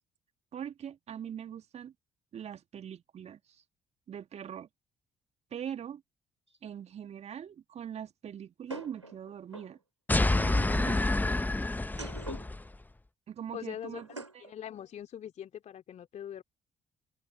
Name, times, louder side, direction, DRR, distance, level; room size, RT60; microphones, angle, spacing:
voice 1, 0.5-1.9 2.3-3.6 4.1-4.7 5.5-6.0 6.6-9.8 10.3-11.0 13.3-14.5, right 9 dB, 45° right, 2.0 m, -42 dB
sound 1, 6.5-6.6 8.7-9.8 11.8-12.6 14.0-14.5, right 2 dB, 90° right, 4.6 m, -44 dB
sound 2, 10.1-12.7, left 2 dB, 10° left, 1.2 m, -28 dB
voice 2, 13.5-14.0 14.4-16.4, left 10 dB, 50° left, 3.0 m, -42 dB
figure-of-eight pair, 45°, 15 cm